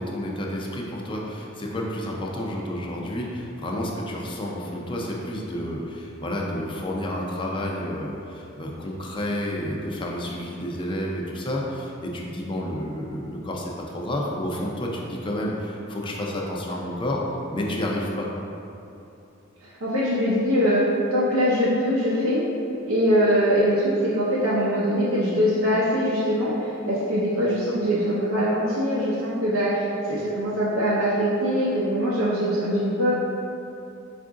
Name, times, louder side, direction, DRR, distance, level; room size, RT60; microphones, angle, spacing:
voice 1, 0.0-17.2 17.5-18.3, left 1 dB, 25° left, -2 dB, 0.5 m, -30 dB
voice 2, 19.6-20.8 21.1-22.4 22.9-33.1, equal, 85° right, -8 dB, 0.6 m, -22 dB
4.7 x 2.5 x 3.6 m, 2.8 s
head